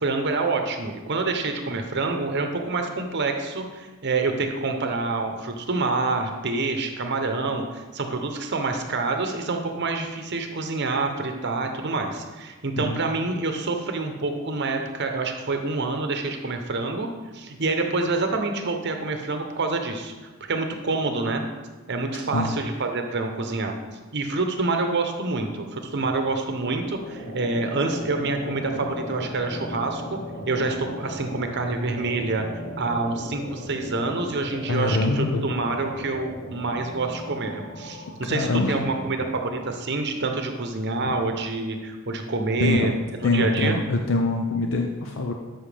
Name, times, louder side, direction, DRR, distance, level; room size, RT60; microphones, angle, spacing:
voice 1, 0.0-17.1 17.3-20.1 20.4-21.4 21.9-23.7 24.1-30.2 30.5-32.4 32.8-43.8, right 3 dB, 55° right, 4 dB, 0.8 m, -27 dB
sound 1, 26.7-39.9, left 1 dB, 35° left, 1.0 m, -37 dB
voice 2, 34.7-35.4 38.3-38.8 41.0-41.1 42.6-42.9 43.2-45.3, left 2 dB, 65° left, 3 dB, 0.6 m, -24 dB
12.5 x 5.8 x 3.4 m, 1.3 s
head